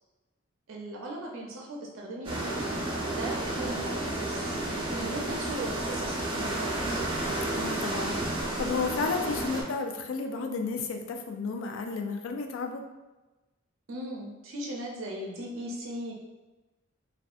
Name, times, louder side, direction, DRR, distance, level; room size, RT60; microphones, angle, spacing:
voice 1, 0.7-2.4 3.1-7.0 13.9-16.2, right 1 dB, 75° right, -2 dB, 0.5 m, -38 dB
sound 1, 2.2-9.6, right 1 dB, 25° right, 0.5 m, -31 dB
voice 2, 7.5-12.8, left 4 dB, 75° left, 4 dB, 0.3 m, -32 dB
2.6 x 2.2 x 2.3 m, 1.1 s
head